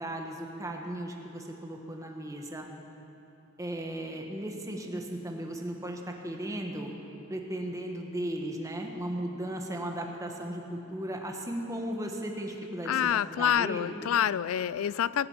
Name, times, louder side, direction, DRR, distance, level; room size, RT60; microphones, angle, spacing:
voice 1, 0.0-2.7 3.6-7.0 7.3-14.0, right 1 dB, 15° right, 2 dB, 1.3 m, -36 dB
voice 2, 12.9-15.3, left 9 dB, 85° left, 19 dB, 0.4 m, -27 dB
18.0 x 7.8 x 8.9 m, 2.9 s
head